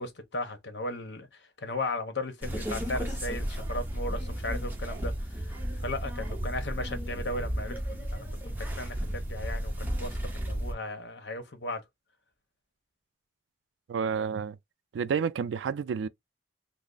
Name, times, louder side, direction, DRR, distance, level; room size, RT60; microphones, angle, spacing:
voice 1, 0.0-11.8, left 2 dB, 75° left, 0.9 m, -36 dB
sound 1, 2.4-10.7, equal, 10° right, 0.7 m, -33 dB
voice 2, 13.9-14.6 14.9-16.1, right 6 dB, 85° right, 0.3 m, -30 dB
3.2 x 2.0 x 3.8 m
head